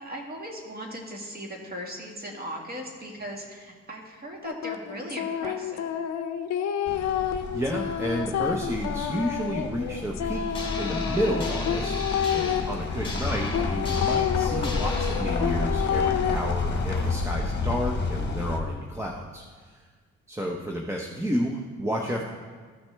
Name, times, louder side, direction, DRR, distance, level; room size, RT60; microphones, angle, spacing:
voice 1, 0.0-5.9 13.2-14.0, equal, 30° right, 0 dB, 1.9 m, -38 dB
sound 1, 4.4-12.6 13.5-16.4, left 9 dB, 65° left, 0.6 m, -29 dB
sound 2, 6.9-18.6, left 3 dB, 35° left, 1.2 m, -30 dB
voice 2, 7.5-19.8 20.3-22.2, equal, 10° right, 0 dB, 0.7 m, -31 dB
sound 3, 10.5-15.2, left 2 dB, 15° left, 1.7 m, -37 dB
14.0 x 6.0 x 3.4 m, 1.5 s
cardioid pair, 90°, 30 cm